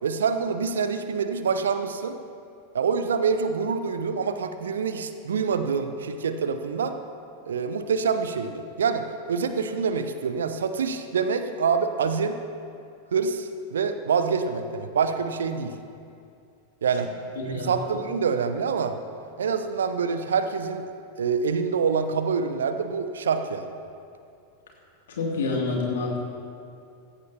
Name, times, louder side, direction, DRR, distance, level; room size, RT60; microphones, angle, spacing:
voice 1, 0.0-2.2 2.7-7.0 7.5-12.4 13.1-15.7 16.8-17.1 17.5-19.0 19.4-20.9 21.2-23.7, right 5 dB, 65° right, 9 dB, 0.8 m, -26 dB
voice 2, 17.4-17.7 25.2-26.2, left 3 dB, 60° left, -2 dB, 2.6 m, -27 dB
16.5 x 16.0 x 2.9 m, 2.5 s
figure-of-eight pair, 90°, 0 cm